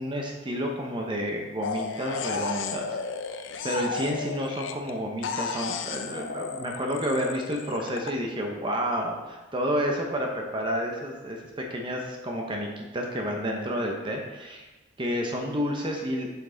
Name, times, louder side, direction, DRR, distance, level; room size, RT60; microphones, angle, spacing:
voice 1, 0.0-3.0 3.6-14.7 15.0-16.3, equal, 25° right, 1 dB, 0.8 m, -30 dB
sound 1, 1.6-4.9 5.2-8.1, left 5 dB, 70° left, 0.5 m, -34 dB
7.5 x 5.9 x 3.9 m, 1.1 s
head